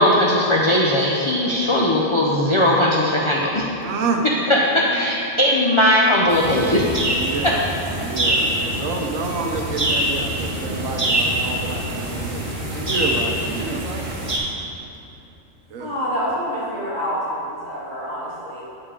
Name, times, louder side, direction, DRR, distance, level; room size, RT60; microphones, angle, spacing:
voice 1, 0.0-3.6 4.5-6.9 7.4-7.6, left 1 dB, 45° left, -3 dB, 0.4 m, -18 dB
voice 2, 3.8-4.2 4.9-5.0 7.1-7.6 8.0-12.4 12.7-14.1 15.7-15.9, right 4 dB, 80° right, 2 dB, 1.1 m, -28 dB
sound 1, 6.3-14.4, right 1 dB, 25° right, 0.9 m, -25 dB
voice 3, 15.8-18.6, equal, 20° left, -9 dB, 2.0 m, -27 dB
7.2 x 5.3 x 4.9 m, 2.8 s
omnidirectional pair, 1.4 m